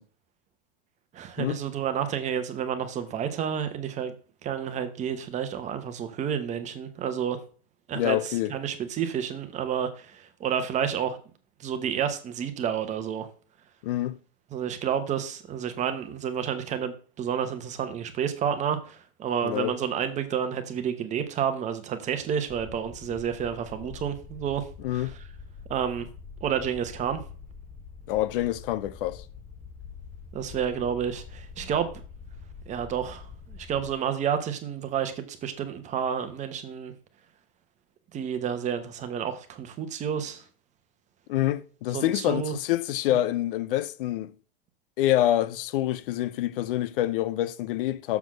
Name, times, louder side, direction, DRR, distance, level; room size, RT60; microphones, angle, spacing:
voice 1, 1.1-4.1 4.4-7.4 7.9-11.2 11.6-13.3 14.5-24.7 24.9-25.1 25.7-26.1 26.4-27.2 30.3-31.9 32.7-36.9 38.1-40.4 41.9-42.5, right 8 dB, 25° right, 1.0 m, -30 dB
voice 2, 7.9-8.5 13.8-14.2 19.4-19.7 24.8-25.1 28.1-29.2 41.3-44.3 45.0-48.2, left 14 dB, 65° left, 0.6 m, -26 dB
sound 1, 22.5-33.9, left 5 dB, 10° left, 0.3 m, -45 dB
7.0 x 4.2 x 6.1 m
supercardioid pair, 150°, 30 cm